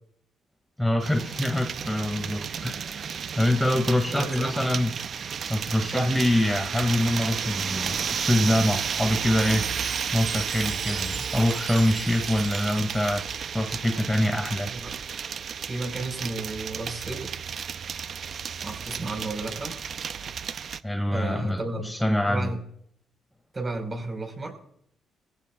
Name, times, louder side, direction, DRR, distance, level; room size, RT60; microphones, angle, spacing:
voice 1, 0.8-4.9 5.5-9.6 10.1-13.2 13.5-14.7 20.8-22.5, left 1 dB, 5° left, 3 dB, 2.0 m, -25 dB
sound 1, 1.0-20.8, right 7 dB, 55° right, 0.5 m, -32 dB
voice 2, 4.1-4.6 5.9-6.1 14.6-14.9 15.7-17.4 18.6-19.7 21.1-21.9 22.3-22.6 23.5-24.5, right 2 dB, 30° right, 4 dB, 4.4 m, -33 dB
Chime, 9.4-13.6, right 5 dB, 80° right, 6.9 m, -41 dB
23.5 x 15.5 x 2.3 m, 0.68 s
cardioid pair, 90°, 0 cm